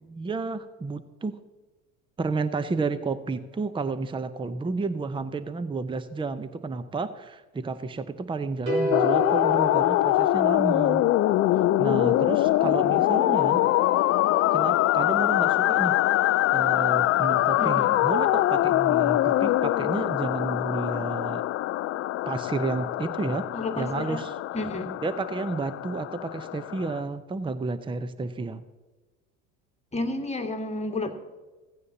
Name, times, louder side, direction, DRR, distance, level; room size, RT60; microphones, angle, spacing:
voice 1, 0.1-1.4 2.2-11.0 11.8-13.6 14.5-16.0 16.2-21.4 22.2-23.5 23.8-24.3 25.0-28.6, right 3 dB, 10° right, 13 dB, 0.7 m, -31 dB
sound 1, 8.7-11.0, equal, 90° right, 3.1 m, -29 dB
sound 2, 8.9-27.0, left 15 dB, 35° left, 0.4 m, -24 dB
voice 2, 12.6-13.2 13.4-13.6 17.6-17.9 23.5-24.2 24.5-24.9 29.9-31.1, left 2 dB, 15° left, 5 dB, 1.6 m, -32 dB
16.0 x 15.5 x 2.8 m, 1.3 s
hypercardioid pair, 70°, 40 cm